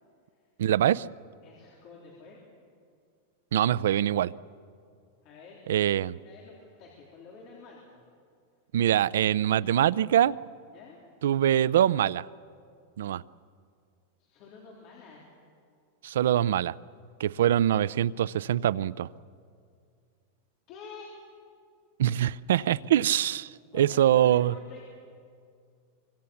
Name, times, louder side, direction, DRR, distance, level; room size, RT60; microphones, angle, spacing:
voice 1, 0.6-1.1 3.5-4.3 5.7-6.1 8.7-10.3 11.2-12.2 13.0-13.2 16.0-16.7 17.2-19.1 22.0-24.5, right 11 dB, 85° right, 0.5 m, -24 dB
voice 2, 1.4-2.4 5.2-5.6 5.8-8.0 10.7-11.0 14.2-15.3 20.7-21.1 23.7-24.8, left 4 dB, 35° left, 3.6 m, -49 dB
24.5 x 24.5 x 7.1 m
supercardioid pair, 175°, 0 cm